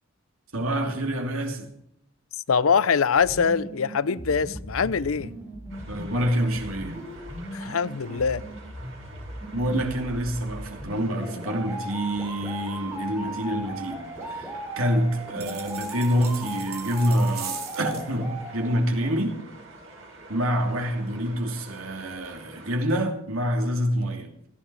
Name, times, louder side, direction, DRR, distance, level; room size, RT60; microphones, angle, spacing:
voice 1, 0.5-1.7 5.9-7.0 9.4-19.3 20.3-24.3, equal, 80° right, 2.9 m, -27 dB
voice 2, 2.5-5.3 7.5-8.4, left 6 dB, 80° left, 0.6 m, -23 dB
sound 1, 3.2-19.2, right 1 dB, 10° right, 5.7 m, -38 dB
sound 2, 5.7-22.8, right 2 dB, 65° right, 7.5 m, -47 dB
sound 3, 15.4-18.1, right 8 dB, 50° right, 2.8 m, -39 dB
17.5 x 15.0 x 4.8 m
head